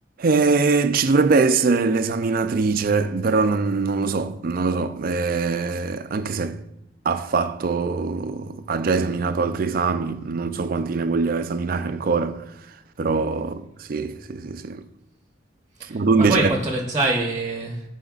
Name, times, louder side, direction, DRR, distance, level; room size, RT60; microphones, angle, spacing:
voice 1, 0.2-6.6 7.1-12.4 13.0-14.8 15.9-16.5, right 4 dB, 50° right, 0.4 m, -22 dB
voice 2, 15.8-17.8, right 2 dB, 20° right, 0.8 m, -24 dB
12.0 x 4.3 x 2.4 m
head